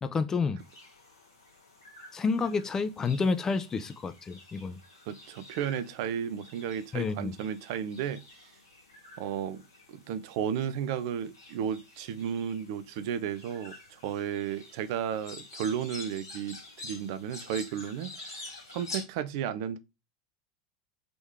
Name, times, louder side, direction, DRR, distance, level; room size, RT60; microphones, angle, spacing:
voice 1, 0.0-0.6 2.1-4.8 6.9-7.3, left 4 dB, 20° left, 0.5 m, -29 dB
sound 1, 0.6-19.0, left 3 dB, 75° left, 1.5 m, -48 dB
voice 2, 5.1-8.2 9.2-9.6 9.9-19.8, right 8 dB, 55° right, 0.5 m, -33 dB
3.8 x 3.0 x 3.4 m
figure-of-eight pair, 80°, 2 cm